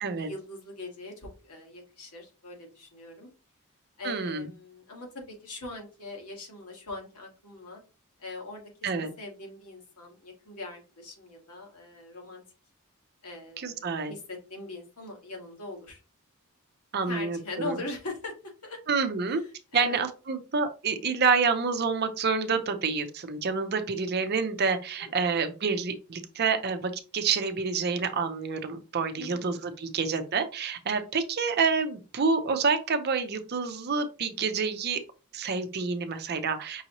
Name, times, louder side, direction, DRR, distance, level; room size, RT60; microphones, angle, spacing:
voice 1, 0.2-3.3 4.0-7.8 8.2-8.6 9.2-12.4 13.2-16.0 17.1-18.3 18.6-18.8 19.3-20.0 25.0-25.3 29.2-29.6, left 2 dB, 90° left, 1 dB, 1.5 m, -41 dB
voice 2, 4.0-4.5 8.8-9.1 13.6-14.1 16.9-17.8 18.9-19.4 19.7-35.0 35.3-36.8, right 5 dB, 45° right, 8 dB, 0.6 m, -28 dB
5.4 x 2.7 x 2.9 m, 0.32 s
head